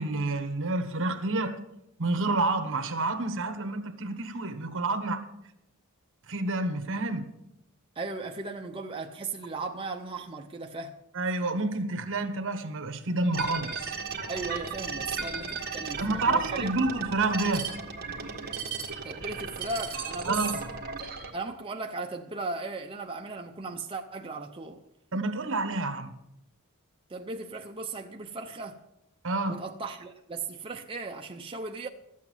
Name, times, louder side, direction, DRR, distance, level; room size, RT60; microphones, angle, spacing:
voice 1, 0.0-1.6 2.0-5.2 6.3-7.3 11.1-13.9 16.0-17.8 20.2-20.6 25.1-26.1 29.2-29.6, right 2 dB, 60° right, 1.3 m, -29 dB
voice 2, 8.0-11.0 14.3-16.7 19.0-20.4 21.3-24.8 27.1-28.8 29.5-31.9, right 3 dB, 25° right, 0.6 m, -37 dB
sound 1, 13.3-21.3, right 5 dB, 45° right, 1.7 m, -35 dB
13.0 x 8.4 x 7.2 m
head